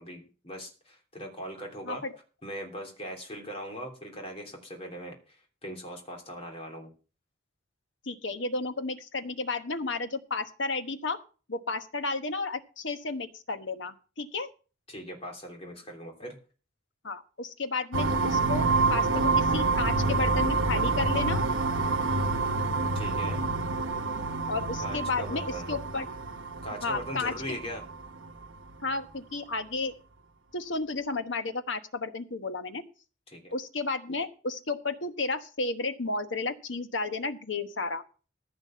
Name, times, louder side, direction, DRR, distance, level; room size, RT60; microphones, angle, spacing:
voice 1, 0.0-2.0 2.4-6.9 14.9-16.4 22.9-23.4 24.8-25.7 26.6-27.8 33.3-33.5, equal, 30° left, 2 dB, 3.1 m, -40 dB
voice 2, 8.0-11.2 11.5-14.5 17.0-21.4 24.5-26.1 26.8-27.6 28.8-29.9 30.5-32.8 33.5-38.0, left 3 dB, 65° left, 9 dB, 1.2 m, -32 dB
sound 1, 17.9-28.4, right 3 dB, 75° right, 1.0 m, -28 dB
15.0 x 5.1 x 7.5 m, 0.37 s
head